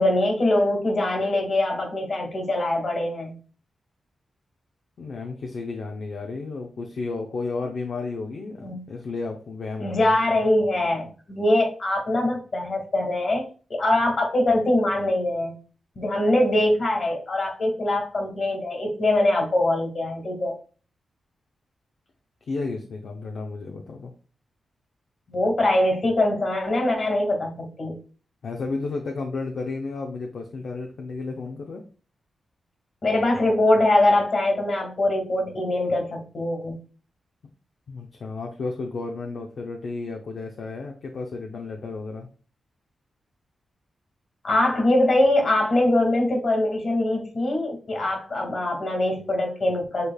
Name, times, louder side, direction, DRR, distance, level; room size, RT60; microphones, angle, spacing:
voice 1, 0.0-3.4 8.6-8.8 9.8-15.6 16.0-20.5 25.3-28.0 33.0-36.8 44.4-50.1, left 1 dB, 50° left, 1 dB, 2.0 m, -23 dB
voice 2, 5.0-10.5 22.4-24.1 28.4-31.8 37.9-42.3, left 3 dB, 70° left, 1 dB, 0.7 m, -32 dB
6.7 x 3.3 x 2.3 m, 0.37 s
cardioid pair, 75°, 0 cm